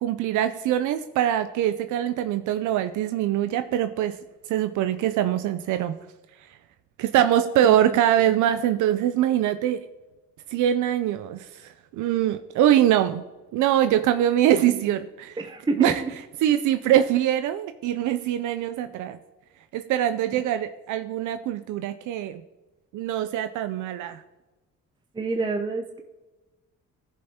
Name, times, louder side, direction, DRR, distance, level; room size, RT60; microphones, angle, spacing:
voice 1, 0.0-4.2 4.5-5.9 7.0-9.8 10.5-13.3 13.5-15.4 15.8-16.0 16.4-19.2 19.7-22.4 22.9-24.2, right 11 dB, 80° right, 10 dB, 0.5 m, -23 dB
voice 2, 7.6-8.4 14.7-15.0 15.4-16.1 25.1-26.0, right 3 dB, 15° right, 5 dB, 0.6 m, -29 dB
15.0 x 5.5 x 2.8 m, 1.1 s
cardioid pair, 90°, 30 cm